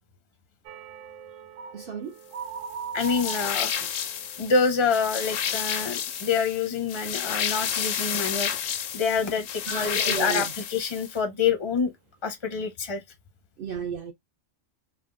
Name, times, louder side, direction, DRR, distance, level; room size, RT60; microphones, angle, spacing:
sound 1, 0.7-6.4 6.7-7.1 7.5-7.7, right 6 dB, 90° right, 1.0 m, -41 dB
voice 1, 1.7-2.2 9.7-10.5 13.6-14.1, right 6 dB, 60° right, 0.6 m, -33 dB
voice 2, 2.9-3.8 4.4-11.9 12.2-13.0, left 5 dB, 35° left, 0.5 m, -27 dB
sound 2, 3.0-11.2, left 9 dB, 90° left, 1.0 m, -30 dB
3.3 x 2.1 x 2.4 m
omnidirectional pair, 1.3 m